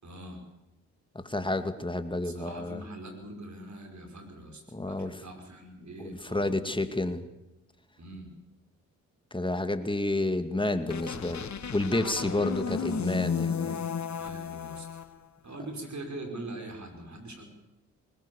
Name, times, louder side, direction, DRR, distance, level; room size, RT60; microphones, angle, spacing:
voice 1, 0.0-0.4 2.2-6.9 8.0-8.3 14.2-14.9 15.4-17.5, right 1 dB, 50° right, 4 dB, 5.6 m, -43 dB
voice 2, 1.2-2.8 4.7-5.2 6.0-7.2 9.3-11.5 11.7-13.9, left 2 dB, 15° left, 10 dB, 2.2 m, -30 dB
sound 1, 10.9-15.1, left 6 dB, 50° left, 1.5 m, -33 dB
20.0 x 20.0 x 7.1 m, 0.96 s
supercardioid pair, 45°, 35 cm